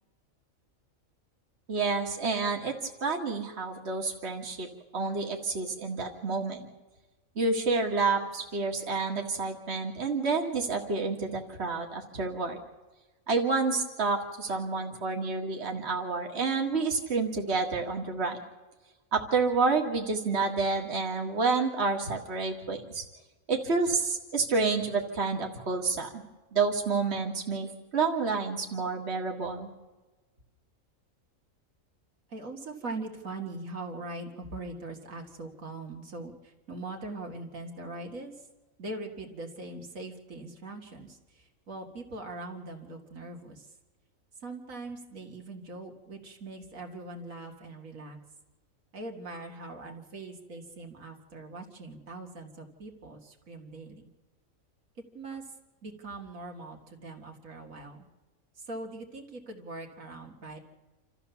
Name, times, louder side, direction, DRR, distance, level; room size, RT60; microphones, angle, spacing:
voice 1, 1.7-2.8 3.0-4.7 4.9-6.7 7.4-12.6 13.3-18.4 19.1-23.0 23.5-26.2 26.5-29.7, right 4 dB, 55° right, 2 dB, 2.1 m, -29 dB
voice 2, 32.3-38.5 38.8-43.7 44.4-48.2 48.9-54.1 55.1-55.5 55.8-58.1 58.6-60.6, right 2 dB, 80° right, 2 dB, 2.5 m, -41 dB
28.0 x 14.0 x 7.0 m, 1.2 s
omnidirectional pair, 1.4 m